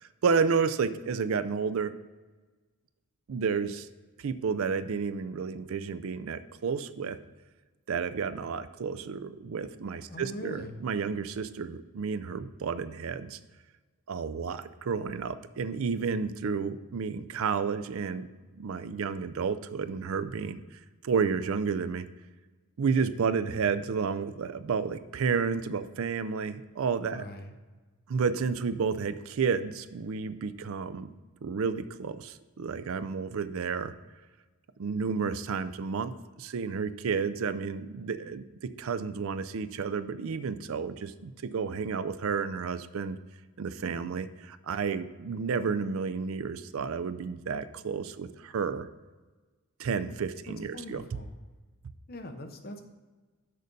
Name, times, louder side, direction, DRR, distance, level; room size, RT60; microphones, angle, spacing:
voice 1, 0.0-1.9 3.3-3.9 4.2-7.2 7.9-13.4 14.1-18.3 18.6-20.6 21.0-22.1 22.8-27.2 28.1-31.1 31.4-33.9 34.8-43.2 43.6-48.9 49.8-51.0, right 5 dB, 65° right, 13 dB, 0.4 m, -31 dB
voice 2, 10.1-10.8 27.1-27.5 50.5-51.3 52.1-52.8, left 1 dB, 40° left, 5 dB, 0.8 m, -42 dB
6.6 x 6.5 x 5.3 m, 1.3 s
head